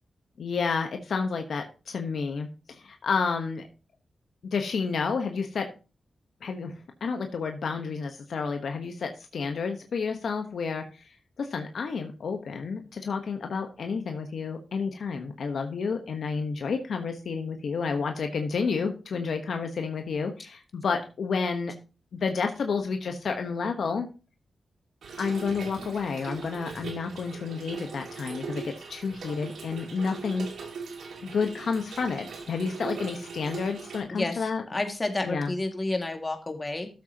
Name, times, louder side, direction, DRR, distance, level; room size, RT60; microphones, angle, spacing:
voice 1, 0.4-3.6 4.5-5.7 6.4-11.0 11.4-21.7 22.1-24.1 25.2-30.5 31.2-34.6 35.2-35.5, left 5 dB, 70° left, 5 dB, 1.1 m, -30 dB
Trickle dribble / Fill (with liquid), 25.0-34.0, right 5 dB, 80° right, 2.0 m, -40 dB
voice 2, 34.1-34.4 34.7-36.9, left 2 dB, 30° left, 4 dB, 2.1 m, -30 dB
12.5 x 7.6 x 2.9 m, 0.32 s
cardioid pair, 60°, 0 cm